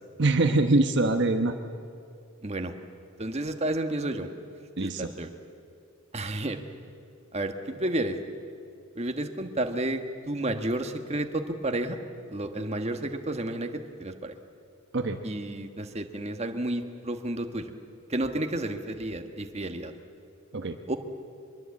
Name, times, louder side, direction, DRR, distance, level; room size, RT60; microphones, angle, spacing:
voice 1, 0.2-1.5 4.8-5.0 14.9-15.2 20.5-20.8, right 2 dB, 55° right, 6 dB, 1.1 m, -23 dB
voice 2, 2.4-2.7 3.2-4.3 4.8-5.3 6.1-6.6 7.3-8.2 8.9-12.0 12.3-14.3 15.2-17.7 18.1-19.9 20.9-21.0, right 1 dB, 30° right, 6 dB, 1.4 m, -31 dB
23.5 x 22.5 x 8.5 m, 2.4 s
head